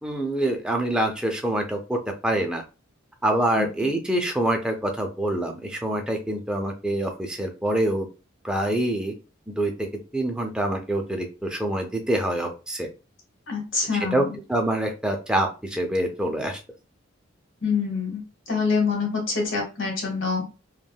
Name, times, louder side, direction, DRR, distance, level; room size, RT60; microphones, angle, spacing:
voice 1, 0.0-2.6 3.2-8.1 8.4-9.1 9.5-9.9 10.1-12.9 14.1-14.2 14.5-16.6, right 1 dB, 5° right, 2 dB, 0.4 m, -25 dB
voice 2, 13.5-14.4 17.6-18.2 18.5-20.5, left 5 dB, 75° left, 1 dB, 1.2 m, -26 dB
3.3 x 2.2 x 2.3 m, 0.31 s
head